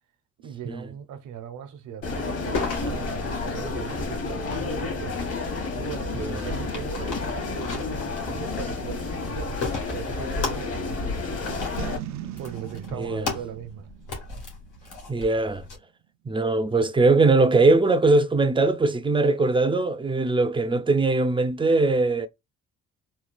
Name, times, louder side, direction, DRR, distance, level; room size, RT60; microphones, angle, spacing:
voice 1, 0.4-5.2 5.7-11.7 12.4-13.9, right 8 dB, 85° right, 0.9 m, -39 dB
sound 1, 2.0-12.0, left 4 dB, 50° left, 2.3 m, -30 dB
sound 2, 2.5-15.8, left 3 dB, 85° left, 1.8 m, -37 dB
Boom, 11.8-15.1, right 12 dB, 65° right, 0.5 m, -39 dB
voice 2, 13.0-13.3 15.1-15.6 16.3-22.3, right 3 dB, 15° right, 0.5 m, -21 dB
4.3 x 2.3 x 2.3 m
cardioid pair, 90°, 30 cm